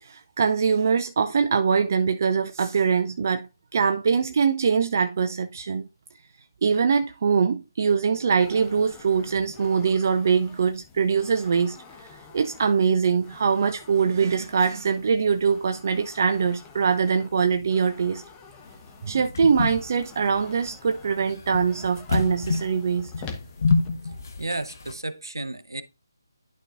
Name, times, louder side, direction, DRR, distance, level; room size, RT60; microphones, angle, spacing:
voice 1, 0.0-3.5 3.7-5.9 6.6-11.8 12.3-18.2 19.0-23.1, right 6 dB, 45° right, 0.5 m, -23 dB
sound 1, 8.4-23.9, left 5 dB, 15° left, 1.0 m, -47 dB
sound 2, 18.6-24.9, left 4 dB, 50° left, 1.3 m, -28 dB
voice 2, 24.4-25.8, right 2 dB, 80° right, 0.8 m, -32 dB
11.5 x 4.5 x 2.5 m
figure-of-eight pair, 155°, 2 cm